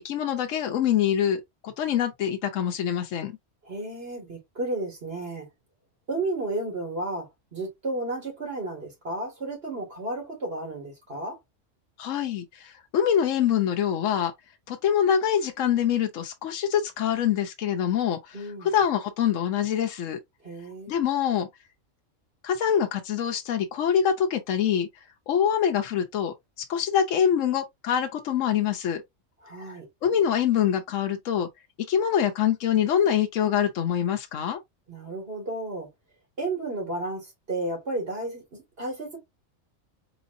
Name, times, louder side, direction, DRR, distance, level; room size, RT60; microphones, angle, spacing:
voice 1, 0.0-3.4 12.0-14.3 14.7-18.4 18.6-20.2 20.9-21.5 22.4-24.9 25.3-29.0 30.0-31.5 31.9-34.6, left 9 dB, 80° left, 1.0 m, -25 dB
voice 2, 3.6-5.5 6.1-11.4 18.3-18.7 20.4-20.9 29.4-29.9 34.9-35.9 36.4-39.2, right 2 dB, 50° right, 2.3 m, -33 dB
4.0 x 3.9 x 2.6 m
omnidirectional pair, 1.3 m